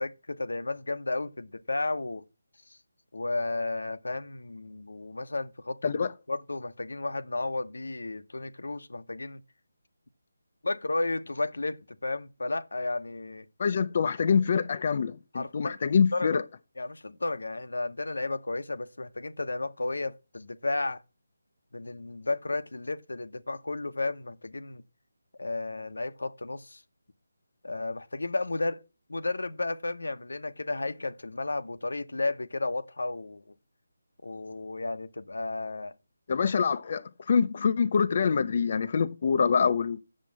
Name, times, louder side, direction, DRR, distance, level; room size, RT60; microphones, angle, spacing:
voice 1, 0.0-2.2 2.7-2.8 3.1-9.4 10.6-13.5 15.3-15.8 16.1-16.4 16.8-21.0 21.7-24.8 25.4-26.8 27.6-28.8 29.1-33.5 34.2-35.9, left 2 dB, 85° left, 0.9 m, -33 dB
voice 2, 13.6-16.4 36.3-40.0, left 6 dB, 35° left, 0.5 m, -25 dB
7.6 x 7.2 x 7.3 m
figure-of-eight pair, 170°, 0 cm